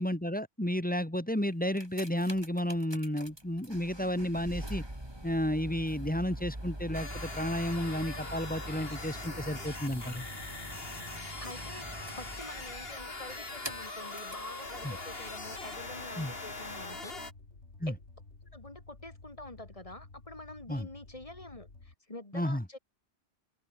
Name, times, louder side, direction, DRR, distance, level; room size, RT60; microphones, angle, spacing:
voice 1, 0.0-4.8 5.2-10.3 14.8-15.0 16.2-16.3 17.8-17.9 20.7-20.9 22.3-22.6, equal, 10° left, 1.8 m, -32 dB
sound 1, 1.5-14.5 15.2-15.3, right 1 dB, 20° right, 5.2 m, -44 dB
sound 2, 6.9-17.3, left 3 dB, 60° left, 3.4 m, -42 dB
voice 2, 11.4-17.2 17.9-18.0 18.5-22.8, left 2 dB, 30° left, 3.1 m, -47 dB
sound 3, 14.6-21.9, left 3 dB, 85° left, 3.6 m, -53 dB
omnidirectional pair, 1.1 m